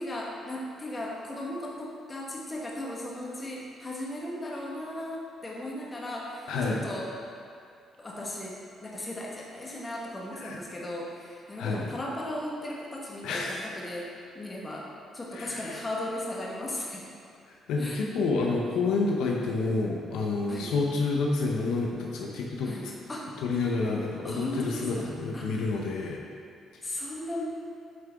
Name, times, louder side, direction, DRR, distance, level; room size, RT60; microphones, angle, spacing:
voice 1, 0.0-7.1 8.0-8.5 8.8-14.9 15.1-17.1 17.8-18.0 20.5-20.7 22.6-23.3 24.2-25.5 26.8-27.5, left 1 dB, 25° left, -3 dB, 1.3 m, -37 dB
voice 2, 6.5-6.8 10.4-10.6 11.6-12.0 13.2-13.5 15.3-15.8 17.7-22.7 23.4-26.2, left 3 dB, 90° left, -1 dB, 0.7 m, -29 dB
8.6 x 3.7 x 3.5 m, 2.4 s
cardioid pair, 90°, 0 cm